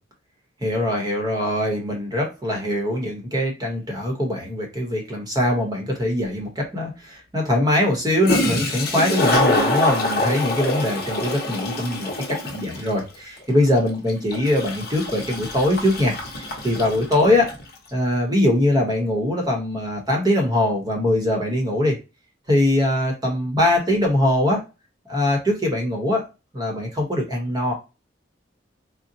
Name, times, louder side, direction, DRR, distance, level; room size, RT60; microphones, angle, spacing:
voice 1, 0.6-17.5 17.9-22.0 22.5-24.6 25.1-26.2 26.5-27.7, left 1 dB, 20° right, 0 dB, 0.8 m, -22 dB
Toilet flush, 6.2-6.3 8.0-8.1 8.2-17.6, left 1 dB, 55° left, 0.8 m, -25 dB
3.8 x 2.0 x 2.7 m, 0.28 s
head